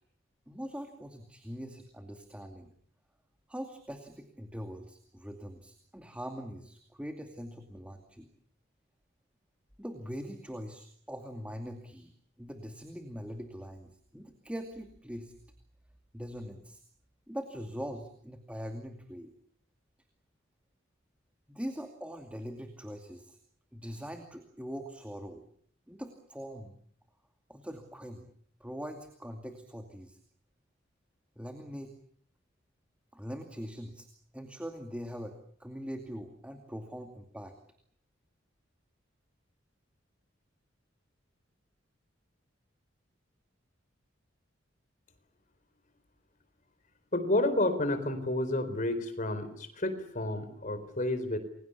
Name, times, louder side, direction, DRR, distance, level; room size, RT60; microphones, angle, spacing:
voice 1, 0.5-2.7 3.5-8.3 9.8-12.1 12.4-15.3 16.1-16.8 17.3-19.3 21.5-23.4 23.7-25.4 25.9-26.8 27.5-28.3 28.6-30.2 31.4-31.9 33.1-34.1 34.3-37.5, equal, 5° right, 5 dB, 2.4 m, -42 dB
voice 2, 47.1-51.4, left 1 dB, 40° left, 10 dB, 4.2 m, -30 dB
30.0 x 23.0 x 7.0 m, 0.63 s
head